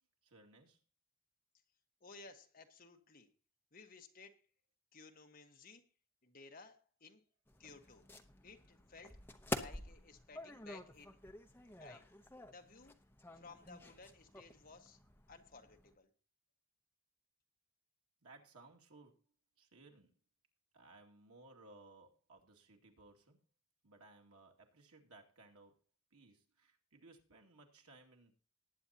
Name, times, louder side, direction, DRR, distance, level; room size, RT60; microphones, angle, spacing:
voice 1, 0.2-0.8 18.2-19.1 19.6-20.1 20.7-23.4 23.8-25.8 26.1-28.3, right 2 dB, 85° right, 1 dB, 2.3 m, -61 dB
voice 2, 2.0-3.3 3.7-4.4 4.9-5.9 6.2-7.2 7.6-8.0 8.4-9.2 9.5-11.2 11.8-12.1 12.5-12.9 13.3-15.0 15.3-16.1, left 4 dB, 40° left, 4 dB, 1.4 m, -57 dB
sound 1, 7.5-16.0, left 1 dB, 10° left, 0.8 m, -48 dB
19.5 x 9.0 x 2.9 m, 0.37 s
head